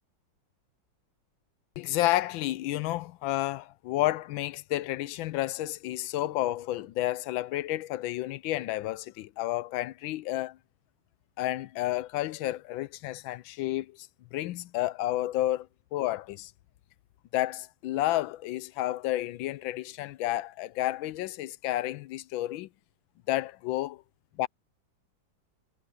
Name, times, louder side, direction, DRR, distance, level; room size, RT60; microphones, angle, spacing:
voice 1, 1.8-10.6 11.4-16.5 17.3-22.7 23.3-24.0 24.4-24.5, left 15 dB, 85° left, 1.4 m, -31 dB
omnidirectional pair, 2.1 m